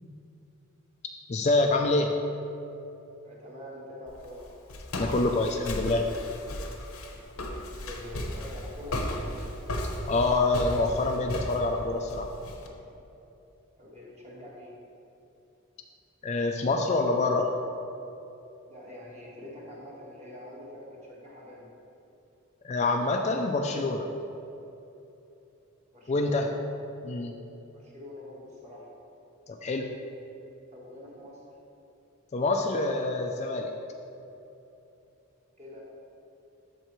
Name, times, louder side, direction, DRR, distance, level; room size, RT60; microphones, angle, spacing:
voice 1, 1.3-2.2 5.0-6.1 10.1-12.3 16.2-17.5 22.6-24.1 26.1-26.5 27.0-27.3 29.5-29.9 32.3-33.7, left 2 dB, 30° left, 3 dB, 0.3 m, -26 dB
voice 2, 3.2-4.5 7.4-9.3 13.8-14.7 18.6-21.7 25.9-26.5 27.7-28.9 30.7-31.4 35.5-35.8, left 1 dB, 30° right, -5 dB, 1.5 m, -45 dB
Walk footsteps, 4.1-12.7, left 1 dB, 80° left, 0.8 m, -35 dB
13.0 x 4.4 x 3.1 m, 2.9 s
head